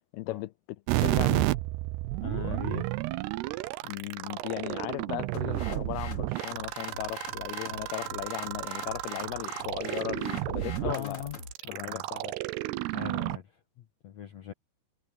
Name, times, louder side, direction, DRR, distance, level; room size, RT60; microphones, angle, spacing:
voice 1, 0.1-0.5 1.0-1.5 3.8-11.2 11.7-12.3 13.2-13.3, left 18 dB, 80° left, 2.5 m, -37 dB
sound 1, 0.9-13.4, right 19 dB, 85° right, 2.7 m, -32 dB
voice 2, 2.2-2.9 10.8-11.4 11.6-12.0 12.9-14.5, left 9 dB, 60° left, 1.9 m, -39 dB
sound 2, 5.3-11.5, left 3 dB, 35° left, 3.7 m, -44 dB
omnidirectional pair, 4.7 m